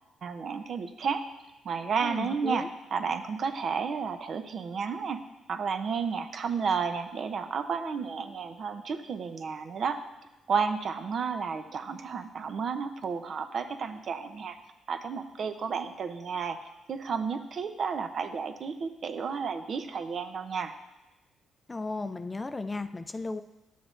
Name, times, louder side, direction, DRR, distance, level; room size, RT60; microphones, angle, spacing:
voice 1, 0.2-1.2 1.6-2.6 2.9-5.2 5.5-10.0 10.5-14.6 14.9-16.6 16.9-20.7, right 5 dB, 55° right, 8 dB, 0.6 m, -32 dB
voice 2, 2.0-2.7 21.7-23.4, left 3 dB, 20° left, 11 dB, 0.3 m, -35 dB
11.0 x 7.1 x 2.5 m, 1.0 s
cardioid pair, 90°, 0 cm